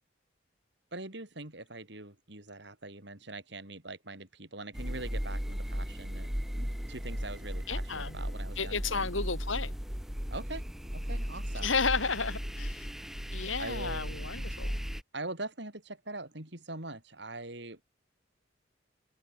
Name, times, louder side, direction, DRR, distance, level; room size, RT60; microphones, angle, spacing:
voice 1, 0.9-6.3 6.6-9.1 10.3-11.7 13.4-14.5 15.1-17.8, right 2 dB, 60° right, 4.3 m, -43 dB
sound 1, 4.7-15.0, equal, ahead, 0.5 m, -36 dB
voice 2, 7.7-8.2 8.6-9.7 11.6-12.9 13.3-14.7, left 4 dB, 85° left, 3.5 m, -32 dB
head